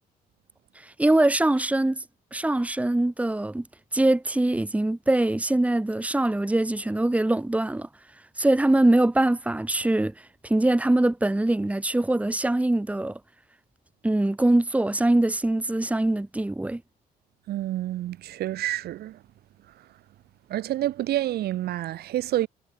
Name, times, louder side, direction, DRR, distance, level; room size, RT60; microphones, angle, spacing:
voice 1, 0.8-2.0 2.3-3.6 3.9-7.9 8.4-10.1 10.4-13.2 14.0-16.8, right 1 dB, 10° right, 2.7 m, -23 dB
voice 2, 17.5-19.2 19.7-19.9 20.5-22.5, right 13 dB, 70° right, 4.5 m, -28 dB
cardioid pair, 110°, 17 cm